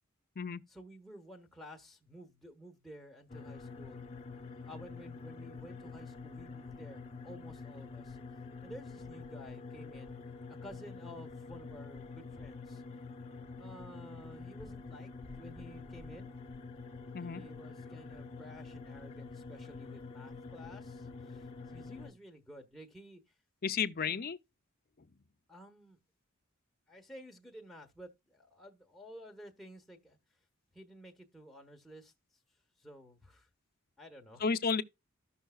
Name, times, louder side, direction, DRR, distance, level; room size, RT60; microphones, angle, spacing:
voice 1, 0.7-4.0 4.3-8.2 8.6-10.1 10.6-12.8 13.6-15.1 15.4-16.3 17.2-23.2 24.1-24.2 25.5-26.0 26.9-30.2 30.7-32.1 32.8-33.5 34.0-34.4, equal, ahead, 1.2 m, -52 dB
sound 1, 3.3-22.1, left 4 dB, 30° left, 1.0 m, -47 dB
voice 2, 23.6-24.4 34.4-34.8, left 5 dB, 45° left, 0.6 m, -32 dB
14.0 x 5.5 x 2.3 m
head